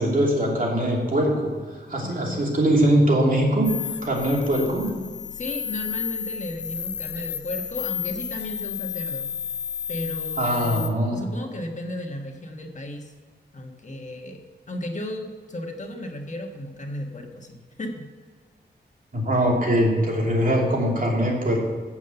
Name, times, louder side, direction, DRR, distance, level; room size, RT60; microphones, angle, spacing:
voice 1, 0.0-1.5 1.9-3.7 4.0-4.9 10.4-11.2 19.1-21.6, right 1 dB, 50° right, -2 dB, 2.8 m, -22 dB
voice 2, 2.0-2.4 5.3-9.3 9.9-13.1 13.5-14.4 14.7-18.1, left 1 dB, 40° left, 3 dB, 1.4 m, -34 dB
sound 1, 3.6-10.9, left 8 dB, 75° left, 0.6 m, -32 dB
8.4 x 7.3 x 6.8 m, 1.5 s
cardioid pair, 65°, 18 cm